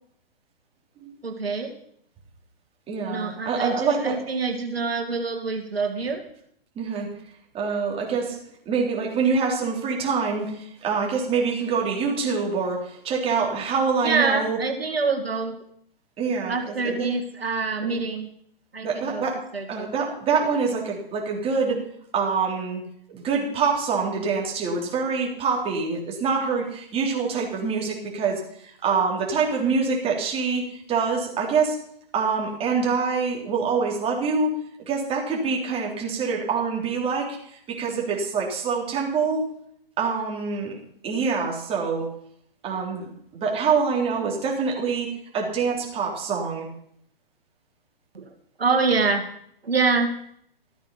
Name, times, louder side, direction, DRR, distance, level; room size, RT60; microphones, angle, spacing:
voice 1, 1.2-1.7 3.1-6.2 14.0-15.6 16.5-18.3 18.7-19.3 19.5-19.9 48.1-48.3 48.6-49.3 49.6-50.3, right 4 dB, 80° right, 4 dB, 2.3 m, -26 dB
voice 2, 2.9-4.2 6.8-7.1 7.5-8.4 8.7-14.6 16.2-17.1 17.8-18.0 18.8-19.4 19.7-21.8 22.1-22.8 23.1-31.8 32.1-34.5 34.9-37.4 37.7-39.4 40.0-40.7 41.0-42.1 42.6-46.7, right 5 dB, 20° right, -1 dB, 3.6 m, -25 dB
14.0 x 9.1 x 5.7 m, 0.67 s
figure-of-eight pair, 130°, 30 cm